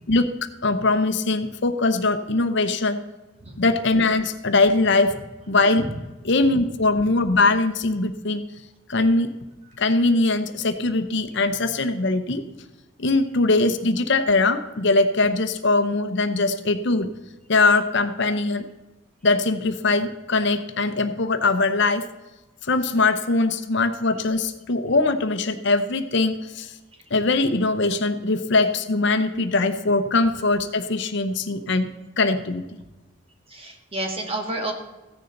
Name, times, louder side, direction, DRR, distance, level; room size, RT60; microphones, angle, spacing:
voice 1, 0.6-3.0 3.6-5.1 5.5-5.8 6.2-8.4 8.9-9.3 9.8-12.4 13.0-17.1 17.5-18.6 19.2-22.0 22.6-26.8 27.1-31.9 32.2-32.6, left 3 dB, 55° left, 8 dB, 0.8 m, -21 dB
voice 2, 33.5-34.7, right 2 dB, 30° right, 2 dB, 1.7 m, -30 dB
15.0 x 9.9 x 3.9 m, 1.1 s
head